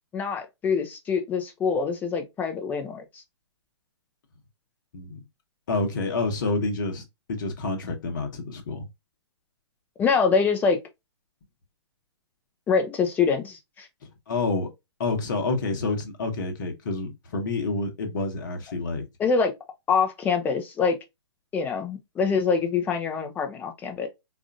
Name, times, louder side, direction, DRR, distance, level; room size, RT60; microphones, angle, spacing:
voice 1, 0.1-3.2 10.0-10.8 12.7-13.9 19.2-19.5 19.9-21.0 21.5-24.1, left 5 dB, 10° left, 0.7 m, -25 dB
voice 2, 5.7-7.0 7.3-8.9 14.3-14.7 15.0-19.0, left 3 dB, 45° left, 1.2 m, -28 dB
4.8 x 2.6 x 2.4 m
figure-of-eight pair, 120°, 14 cm